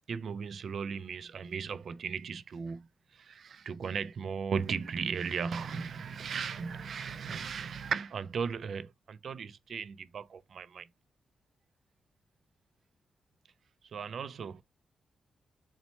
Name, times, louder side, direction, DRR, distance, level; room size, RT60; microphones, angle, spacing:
voice 1, 0.1-2.8 3.3-10.9 13.9-14.6, right 6 dB, 55° right, 0.3 m, -36 dB
4.1 x 2.1 x 4.1 m
wide cardioid pair, 155°, 0 cm